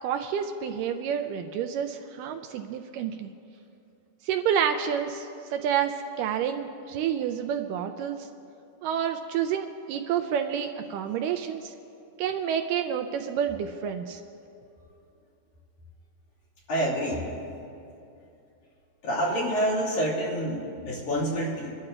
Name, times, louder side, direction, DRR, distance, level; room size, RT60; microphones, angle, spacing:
voice 1, 0.0-3.3 4.3-8.3 8.8-11.7 12.2-14.2, right 8 dB, 80° right, 6 dB, 2.0 m, -29 dB
voice 2, 16.7-17.3 19.0-21.8, equal, 60° left, -6 dB, 3.6 m, -27 dB
29.0 x 12.5 x 2.4 m, 2.7 s
omnidirectional pair, 4.0 m